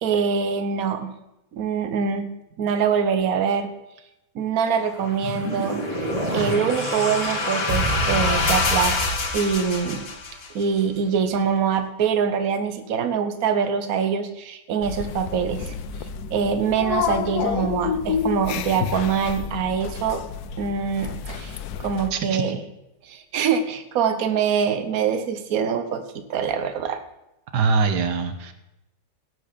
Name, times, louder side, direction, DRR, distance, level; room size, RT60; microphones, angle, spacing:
voice 1, 0.0-1.1 1.5-2.3 2.6-3.7 4.3-5.8 6.3-8.9 9.3-10.1 10.5-15.7 16.3-20.2 20.6-22.6 23.0-26.0 26.3-27.0, right 6 dB, 60° right, 9 dB, 1.5 m, -24 dB
sound 1, 4.8-10.2, right 1 dB, 20° right, 2.8 m, -29 dB
sound 2, 5.4-10.6, left 3 dB, 40° left, 1.5 m, -27 dB
sound 3, 14.8-22.1, left 8 dB, 70° left, 1.2 m, -29 dB
voice 2, 22.1-22.4 27.5-28.5, right 4 dB, 85° right, 9 dB, 1.7 m, -23 dB
17.0 x 6.5 x 6.9 m, 0.90 s
omnidirectional pair, 1.8 m